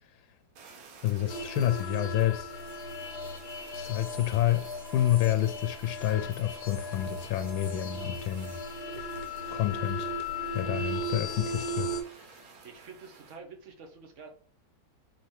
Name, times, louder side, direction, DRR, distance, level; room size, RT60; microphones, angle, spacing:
Fire, 0.5-13.4, right 5 dB, 85° right, 1.8 m, -53 dB
voice 1, 1.0-2.5 3.7-8.6 9.5-10.1 10.5-12.3, left 12 dB, 85° left, 1.4 m, -29 dB
sound 1, 1.3-12.0, left 1 dB, 60° left, 1.6 m, -37 dB
sound 2, 1.5-1.9 4.6-4.8 6.3-6.6 8.1-8.3, left 1 dB, 10° left, 1.8 m, -55 dB
voice 2, 12.6-14.3, right 4 dB, 50° right, 1.0 m, -48 dB
4.3 x 3.9 x 3.0 m
omnidirectional pair, 2.1 m